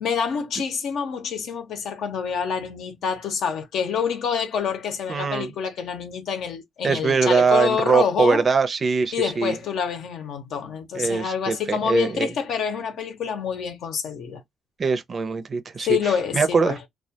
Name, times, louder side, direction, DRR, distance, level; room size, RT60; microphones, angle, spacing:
voice 1, 0.0-8.4 9.1-14.4 15.8-16.8, left 7 dB, 75° left, 0.7 m, -27 dB
voice 2, 5.1-5.5 6.8-9.5 10.9-12.3 14.8-16.9, right 5 dB, 40° right, 0.5 m, -22 dB
2.3 x 2.1 x 2.7 m
cardioid pair, 90°, 0 cm